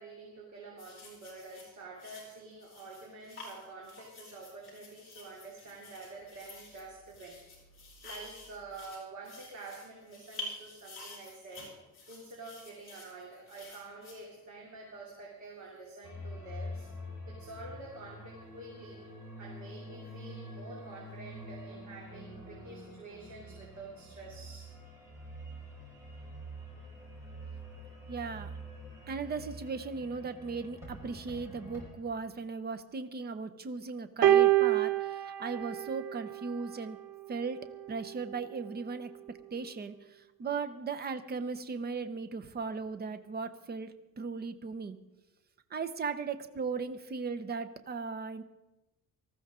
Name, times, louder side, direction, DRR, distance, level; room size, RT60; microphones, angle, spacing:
voice 1, 0.0-7.4 8.0-11.7 12.1-16.9 17.3-19.0 19.4-24.7, right 3 dB, 50° right, -3 dB, 2.9 m, -48 dB
sound 1, 0.8-14.8 15.6-15.8, left 2 dB, 35° left, 6.2 m, -49 dB
sound 2, 16.0-31.9, equal, 5° right, 5.1 m, -46 dB
voice 2, 28.1-28.6 29.1-37.0 37.3-45.0 45.7-48.4, right 4 dB, 25° right, 10 dB, 0.7 m, -37 dB
sound 3, 34.2-36.7 37.7-37.9, right 13 dB, 75° right, 0.8 m, -26 dB
19.0 x 14.0 x 3.7 m, 1.0 s
cardioid pair, 170°, 37 cm